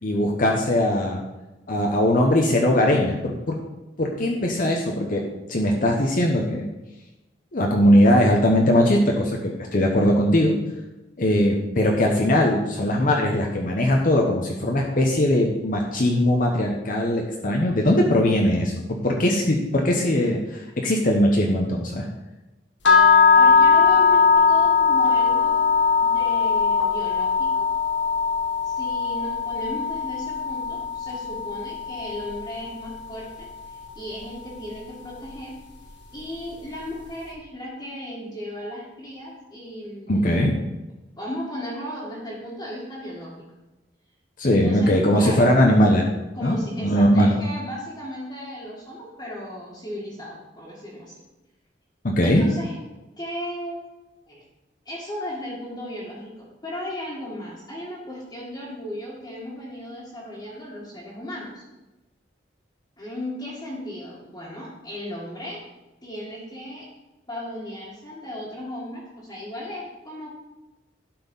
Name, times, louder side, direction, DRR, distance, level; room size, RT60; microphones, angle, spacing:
voice 1, 0.0-1.2 1.7-3.5 4.0-5.2 5.5-6.6 7.5-10.5 11.2-22.1 40.1-40.5 44.4-46.1 46.4-47.4 52.0-52.5, left 1 dB, 50° left, 0 dB, 0.9 m, -20 dB
sound 1, 22.8-32.9, left 5 dB, 85° left, 1.6 m, -20 dB
voice 2, 23.3-25.6 26.0-27.7 28.6-35.5 36.1-40.6 41.2-43.4 44.4-45.5 46.3-51.2 52.2-52.8 53.2-53.9 54.3-54.4 54.9-61.6 63.0-65.6 66.0-66.9 67.3-70.3, left 1 dB, 25° left, -7 dB, 1.9 m, -35 dB
12.0 x 4.4 x 5.4 m, 1.1 s
head